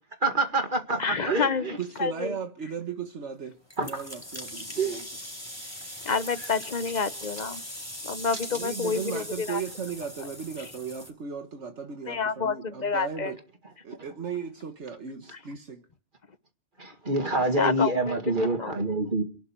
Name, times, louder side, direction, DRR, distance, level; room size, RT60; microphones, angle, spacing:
voice 1, 0.2-1.8 3.8-4.0 4.7-5.0 16.8-19.2, right 2 dB, 45° right, 2.3 m, -26 dB
voice 2, 1.0-1.7 2.0-2.4 6.0-7.6 8.0-9.6 12.1-13.3 17.6-18.2 18.6-18.8, left 5 dB, 40° left, 1.0 m, -28 dB
voice 3, 1.8-3.6 3.9-5.1 8.5-13.4 13.8-15.8, right 7 dB, 70° right, 1.6 m, -36 dB
sound 1, 3.7-11.1, left 1 dB, 20° left, 4.5 m, -40 dB
28.0 x 11.0 x 4.5 m
omnidirectional pair, 1.2 m